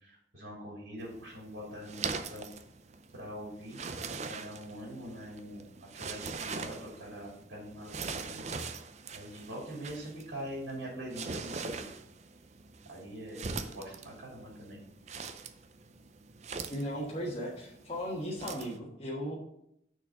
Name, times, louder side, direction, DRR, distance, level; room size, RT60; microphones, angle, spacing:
voice 1, 0.0-2.4 3.1-3.8 4.2-8.4 9.1-11.9 12.9-14.8, equal, 85° right, -3 dB, 2.9 m, -43 dB
sound 1, 1.0-18.8, right 4 dB, 40° right, 0.5 m, -42 dB
voice 2, 16.7-19.3, equal, 30° left, -5 dB, 1.4 m, -36 dB
6.3 x 4.6 x 6.4 m, 0.76 s
head